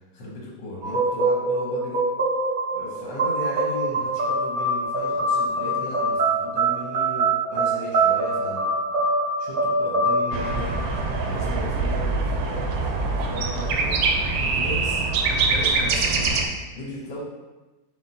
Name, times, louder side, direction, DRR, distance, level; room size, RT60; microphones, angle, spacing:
voice 1, 0.1-2.0 2.7-8.7 9.0-9.1 9.4-10.7 11.2-13.9 14.4-16.4 16.7-17.2, left 1 dB, 80° left, -4 dB, 1.6 m, -36 dB
sound 1, 0.8-11.5, right 2 dB, 65° right, 0.5 m, -24 dB
sound 2, 10.3-16.5, right 3 dB, 85° right, 1.3 m, -24 dB
4.3 x 3.4 x 2.7 m, 1.1 s
omnidirectional pair, 2.0 m